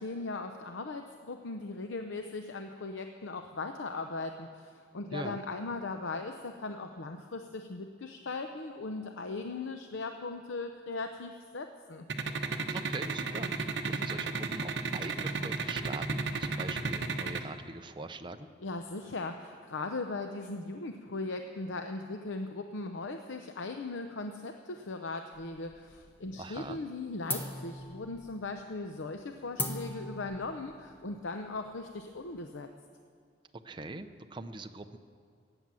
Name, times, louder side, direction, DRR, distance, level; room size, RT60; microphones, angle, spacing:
voice 1, 0.0-12.0 18.6-32.7, left 3 dB, 75° left, 6 dB, 0.7 m, -38 dB
sound 1, 12.1-17.4, right 4 dB, 60° right, 1.0 m, -32 dB
voice 2, 12.7-13.5 13.8-18.5 26.4-26.8 33.6-35.0, right 2 dB, 25° right, 8 dB, 0.6 m, -42 dB
sound 2, 25.3-26.2 26.5-26.9 27.3-32.4, left 1 dB, 10° left, 1.1 m, -40 dB
17.0 x 9.0 x 7.5 m, 2.1 s
head